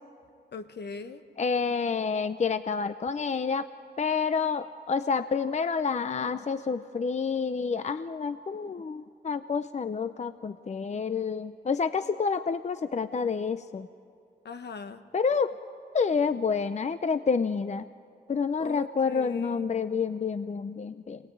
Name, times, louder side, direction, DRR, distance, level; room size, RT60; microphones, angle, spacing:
voice 1, 0.5-1.2 14.4-15.0 18.6-19.6, left 5 dB, 70° left, 9 dB, 1.3 m, -40 dB
voice 2, 1.4-3.7 4.0-13.9 15.1-15.5 15.9-17.8 18.3-21.2, left 5 dB, 40° left, 11 dB, 0.6 m, -28 dB
24.5 x 18.5 x 9.3 m, 2.4 s
cardioid pair, 85°, 18 cm